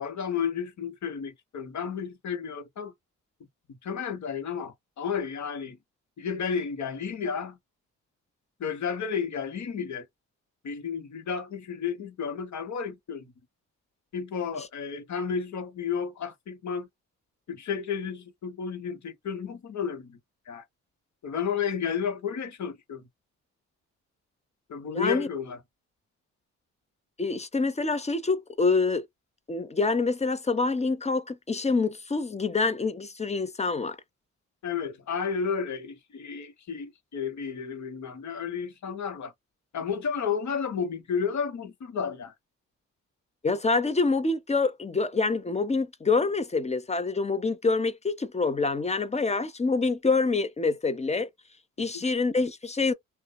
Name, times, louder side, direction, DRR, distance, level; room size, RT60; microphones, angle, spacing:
voice 1, 0.0-2.9 3.8-5.8 6.2-7.6 8.6-10.1 10.6-13.3 14.1-16.9 17.5-20.2 20.5-20.6 21.2-23.1 24.7-25.6 34.6-39.3 39.7-42.3, left 6 dB, 60° left, 1.0 m, -32 dB
voice 2, 24.9-25.3 27.2-29.0 29.5-34.0 43.4-51.3 51.8-52.9, left 3 dB, 20° left, 0.6 m, -26 dB
2.6 x 2.1 x 2.2 m
supercardioid pair, 60°, 32 cm